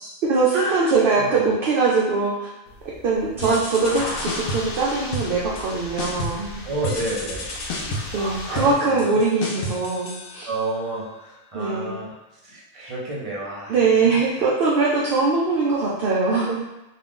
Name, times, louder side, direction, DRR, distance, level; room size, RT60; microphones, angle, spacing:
voice 1, 0.0-2.5 3.0-6.6 7.9-10.5 11.5-12.0 13.7-16.6, right 4 dB, 65° right, -4 dB, 0.6 m, -22 dB
voice 2, 0.5-0.9 1.2-1.5 3.4-3.6 6.6-7.5 8.1-9.2 10.5-12.1 12.4-13.7 14.0-14.2, right 2 dB, 30° right, -5 dB, 0.7 m, -30 dB
sound 1, 2.7-8.7, left 1 dB, 90° left, 1.0 m, -36 dB
sound 2, 3.4-4.8 5.1-5.7 6.0-6.5 6.8-10.8, left 1 dB, 60° left, 0.6 m, -32 dB
2.4 x 2.4 x 3.6 m, 0.97 s
omnidirectional pair, 1.3 m